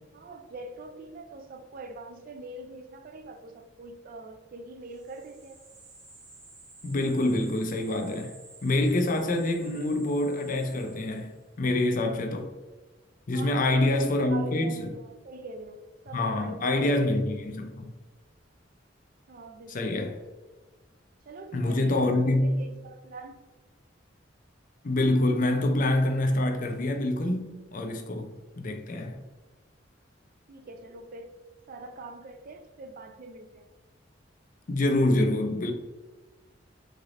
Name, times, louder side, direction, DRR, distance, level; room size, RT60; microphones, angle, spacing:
voice 1, 0.1-5.6 13.3-17.4 19.3-20.3 21.3-23.4 30.5-31.3 31.7-33.7, right 2 dB, 45° right, 0.4 m, -43 dB
sound 1, 4.9-11.4, right 3 dB, 85° right, 1.1 m, -52 dB
voice 2, 6.8-8.3 8.6-12.5 13.3-14.9 16.1-17.9 19.7-20.1 21.5-22.5 24.8-28.3 28.6-29.2 34.7-35.7, left 1 dB, 45° left, 0.5 m, -26 dB
3.9 x 3.3 x 2.5 m
head